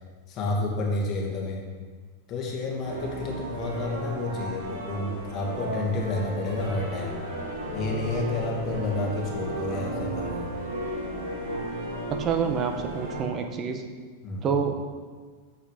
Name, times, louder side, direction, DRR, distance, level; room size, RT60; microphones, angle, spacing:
voice 1, 0.3-1.6 2.3-7.2 7.7-10.5 14.2-14.5, left 2 dB, 35° left, -1 dB, 1.8 m, -30 dB
sound 1, 2.8-13.2, right 1 dB, 90° right, 2.3 m, -34 dB
voice 2, 12.1-13.8 14.4-14.8, right 6 dB, 35° right, 5 dB, 0.8 m, -27 dB
6.9 x 5.6 x 5.0 m, 1.5 s
supercardioid pair, 125°, 0 cm